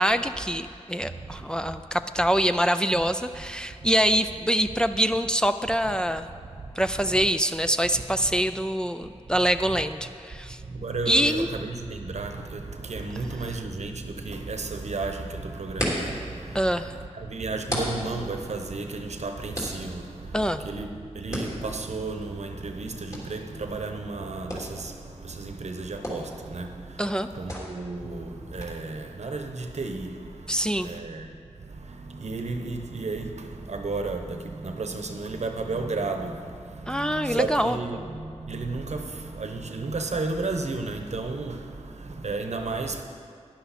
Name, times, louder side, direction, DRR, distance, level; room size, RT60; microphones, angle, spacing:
voice 1, 0.0-6.3 6.8-10.6 11.1-11.5 16.5-16.9 20.3-20.6 27.0-27.3 30.5-30.9 36.9-37.8, equal, 5° left, 0.4 m, -25 dB
voice 2, 1.0-1.8 2.9-3.0 3.8-3.9 6.3-7.3 7.9-8.3 9.3-9.4 9.7-9.8 10.6-43.0, right 3 dB, 75° right, 0.9 m, -33 dB
sound 1, 13.1-28.6, equal, 25° left, 3.2 m, -38 dB
12.0 x 10.5 x 4.2 m
wide cardioid pair, 55°, 12 cm